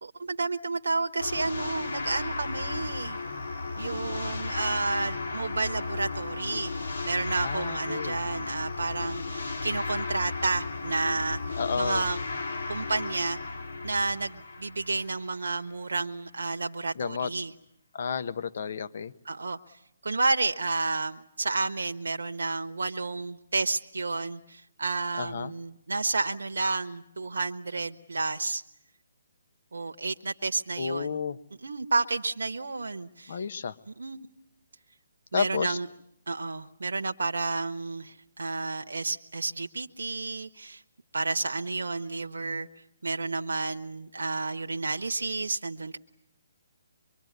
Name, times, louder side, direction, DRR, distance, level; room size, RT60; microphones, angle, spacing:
voice 1, 0.0-3.2 3.8-6.7 7.0-12.2 12.7-13.4 13.8-17.5 19.2-19.6 20.0-28.6 29.7-31.2 31.6-33.4 33.9-34.3 35.3-35.9 36.3-40.8 41.1-42.7 43.0-46.0, right 3 dB, 75° right, 6 dB, 1.2 m, -31 dB
sound 1, 1.2-15.5, left 3 dB, 75° left, 3.2 m, -34 dB
voice 2, 7.4-8.2 11.6-12.1 17.0-17.3 17.9-19.1 25.2-25.5 30.8-31.4 33.3-33.7 35.3-35.8, left 6 dB, 55° left, 12 dB, 1.2 m, -31 dB
24.5 x 23.5 x 9.5 m, 0.75 s
figure-of-eight pair, 145°, 0 cm